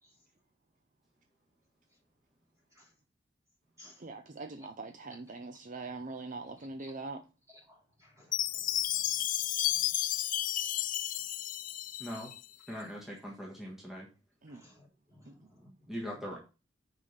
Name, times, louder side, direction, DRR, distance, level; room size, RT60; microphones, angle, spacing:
voice 1, 4.0-7.2 14.4-14.6 15.3-15.4, right 3 dB, 45° right, 0.6 m, -42 dB
voice 2, 7.7-10.1 11.1-11.2 12.7-12.8 14.5-16.0, left 1 dB, 20° right, 3.4 m, -60 dB
Chime, 8.3-12.4, left 12 dB, 45° left, 0.4 m, -32 dB
voice 3, 12.0-12.3 12.7-14.1 15.9-16.4, equal, ahead, 1.4 m, -41 dB
5.5 x 5.0 x 6.4 m
head